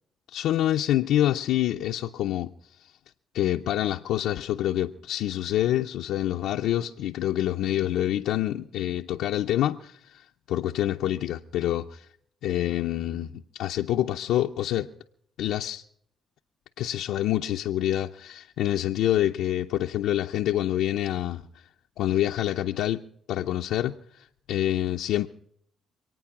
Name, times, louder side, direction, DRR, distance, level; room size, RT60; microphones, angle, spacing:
voice 1, 0.3-2.5 3.3-12.1 12.4-14.9 15.4-15.8 16.8-21.6 22.0-23.0 23.3-25.3, left 13 dB, 85° left, 0.6 m, -27 dB
25.5 x 9.2 x 5.9 m
cardioid pair, 90°, 0 cm